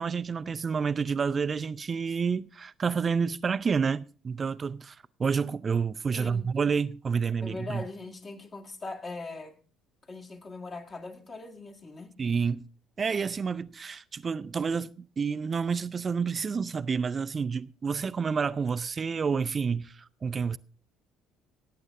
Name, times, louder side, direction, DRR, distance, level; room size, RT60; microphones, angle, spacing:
voice 1, 0.0-7.8 12.2-12.6 13.0-20.6, right 5 dB, 35° right, 0.5 m, -29 dB
voice 2, 6.1-6.7 7.4-9.6 10.0-12.1, left 3 dB, 40° left, 2.3 m, -41 dB
17.5 x 8.6 x 3.7 m
hypercardioid pair, 55°, 0 cm